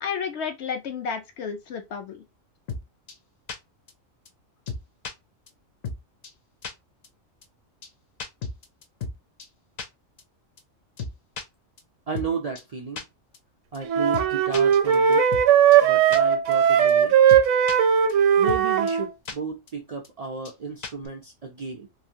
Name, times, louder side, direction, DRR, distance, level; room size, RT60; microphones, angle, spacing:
voice 1, 0.0-2.2, left 6 dB, 65° left, 0.8 m, -31 dB
sound 1, 2.7-2.8 3.1-3.2 3.5-3.6 3.9-4.0 4.2-4.3 4.7-5.1 5.5-5.6 5.8-6.0 6.2-6.3 6.6-6.7 7.0-7.1 7.4-7.5 7.8-7.9 8.2-9.1 9.4-9.5 9.8-9.9 10.2-10.3 10.6-10.7 11.0-11.4 11.8-11.9 12.1-12.3 12.5-12.6 13.0-13.1 13.3-13.4 13.7-13.8 14.1-14.3 14.5-15.4 15.7-15.8 16.1-16.2 16.5-16.6 16.9-17.0 17.3-17.8 18.1-18.2 18.5-18.6 18.9-19.0 19.2-19.3 19.7-19.8 20.0-20.1 20.4-20.5 20.8-21.1, left 4 dB, 80° left, 0.3 m, -34 dB
voice 2, 12.1-13.0 13.7-15.2 15.8-17.1 18.4-21.9, right 5 dB, 90° right, 0.3 m, -33 dB
sound 2, 13.9-19.1, right 8 dB, 75° right, 0.9 m, -18 dB
3.0 x 2.5 x 2.7 m
omnidirectional pair, 1.4 m